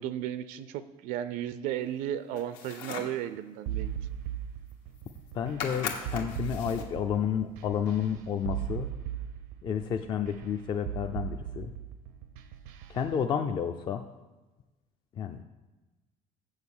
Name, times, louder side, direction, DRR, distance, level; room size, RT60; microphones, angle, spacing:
voice 1, 0.0-3.9, right 11 dB, 70° right, 13 dB, 0.5 m, -34 dB
sound 1, 2.4-3.2 4.7-4.8 5.0-5.3 5.6-7.0, left 6 dB, 80° left, 1.5 m, -38 dB
sound 2, 3.7-13.2, right 10 dB, 90° right, 0.8 m, -38 dB
voice 2, 5.3-8.9 9.6-11.7 12.9-14.0 15.2-15.4, left 8 dB, 30° left, 5 dB, 0.4 m, -31 dB
7.6 x 6.4 x 7.1 m, 1.2 s
cardioid pair, 155°, 15 cm